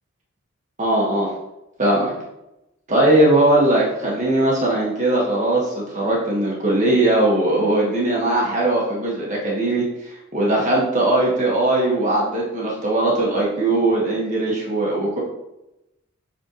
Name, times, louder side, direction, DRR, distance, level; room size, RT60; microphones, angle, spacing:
voice 1, 0.8-1.3 1.8-2.1 2.9-15.2, right 1 dB, 35° right, -5 dB, 1.6 m, -19 dB
7.6 x 4.2 x 3.1 m, 0.91 s
head